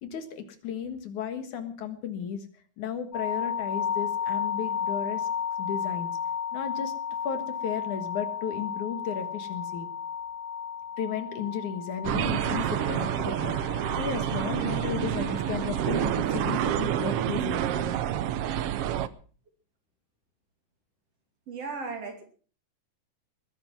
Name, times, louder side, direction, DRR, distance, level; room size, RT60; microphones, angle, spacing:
voice 1, 0.0-2.5 2.8-5.3 5.6-6.1 6.5-6.9 7.2-9.9 11.0-17.9, left 7 dB, 70° left, 9 dB, 3.0 m, -34 dB
sound 1, 3.1-17.2, left 7 dB, 90° left, 0.9 m, -34 dB
sound 2, 12.0-19.1, right 11 dB, 80° right, 1.3 m, -28 dB
voice 2, 21.5-22.2, right 4 dB, 50° right, 5 dB, 3.6 m, -36 dB
20.5 x 10.0 x 6.1 m, 0.42 s
omnidirectional pair, 3.8 m